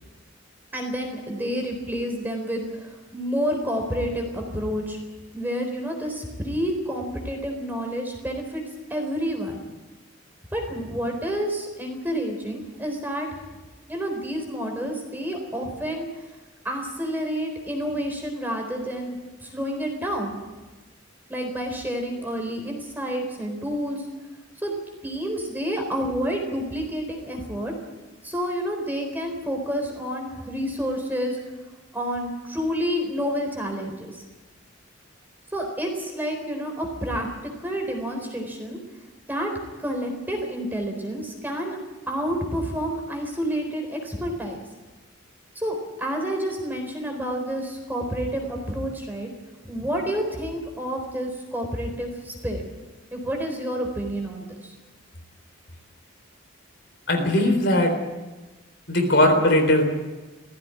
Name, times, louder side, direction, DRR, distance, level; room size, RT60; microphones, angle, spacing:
voice 1, 0.7-5.0 5.3-8.6 8.9-9.6 10.5-13.3 13.9-16.3 16.6-20.4 21.3-24.1 24.6-24.7 25.0-27.7 28.2-31.4 31.9-34.2 35.5-38.8 39.2-39.5 39.8-41.8 42.1-44.6 45.5-49.3 49.6-52.6 53.1-54.7, equal, 10° right, 2 dB, 4.0 m, -29 dB
voice 2, 57.1-57.9 58.9-59.8, left 1 dB, 55° left, 4 dB, 3.9 m, -19 dB
18.0 x 15.5 x 9.8 m, 1.2 s
head